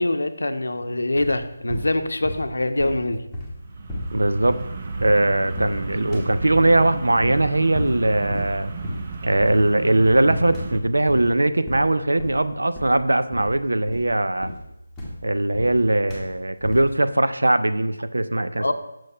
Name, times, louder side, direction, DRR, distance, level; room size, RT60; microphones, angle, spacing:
voice 1, 0.0-3.2 18.6-18.7, left 1 dB, 85° left, 8 dB, 0.6 m, -24 dB
sound 1, 1.2-1.4 1.7-2.5 2.8-5.3 5.6-5.9 6.1-6.9 7.2-7.5 7.7-8.0 8.3-8.6 8.8-9.1 9.4-9.7 10.0-10.3 10.5-11.3 11.7-12.5 12.7-13.0 13.3-13.6 13.9-15.8 16.1-16.3 16.6-16.9, left 1 dB, ahead, 1.2 m, -34 dB
sound 2, 3.6-10.8, right 3 dB, 35° right, 0.6 m, -32 dB
voice 2, 4.1-4.6 5.0-8.7 9.2-14.5 15.2-18.7, right 1 dB, 90° right, 11 dB, 0.5 m, -20 dB
6.2 x 4.3 x 5.4 m, 0.88 s
figure-of-eight pair, 165°, 0 cm